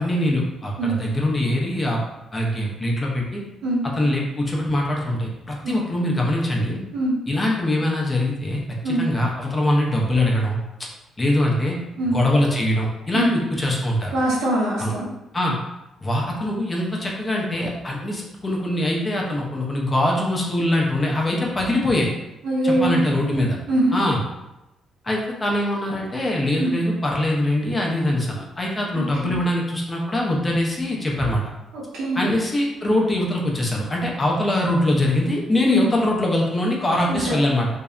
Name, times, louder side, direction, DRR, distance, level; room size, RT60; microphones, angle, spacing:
voice 1, 0.0-2.0 2.3-3.4 4.0-6.8 7.3-8.6 8.8-10.6 11.2-11.8 12.0-14.1 14.8-14.9 15.3-15.6 16.0-22.1 22.6-23.6 23.9-24.2 25.0-31.4 32.1-37.7, left 1 dB, 25° left, -2 dB, 0.6 m, -22 dB
voice 2, 14.1-15.1 22.4-23.0 23.7-23.9 26.6-26.7 28.9-29.3 31.7-32.2 35.7-35.9 37.1-37.4, right 1 dB, 90° right, -5 dB, 0.7 m, -23 dB
2.6 x 2.1 x 2.4 m, 0.95 s
cardioid pair, 90°, 0 cm